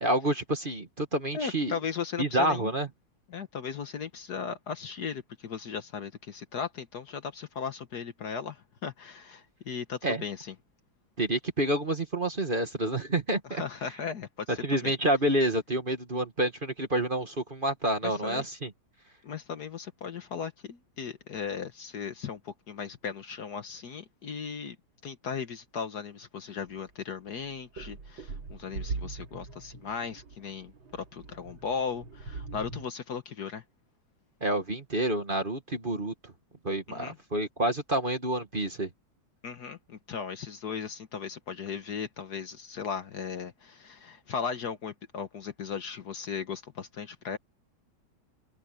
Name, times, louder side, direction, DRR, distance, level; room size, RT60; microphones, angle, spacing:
voice 1, 0.0-1.8 2.2-2.9 10.0-10.2 11.2-13.6 14.6-18.7 34.4-36.3 36.6-38.9, right 1 dB, 25° right, 1.7 m, -28 dB
voice 2, 1.3-2.7 3.3-10.5 13.4-14.9 18.0-18.4 19.2-24.8 25.0-33.6 36.9-37.2 39.4-47.4, left 6 dB, 55° left, 1.6 m, -37 dB
sound 1, 26.7-26.8 27.3-32.9, right 4 dB, 75° right, 3.2 m, -41 dB
omnidirectional pair, 2.2 m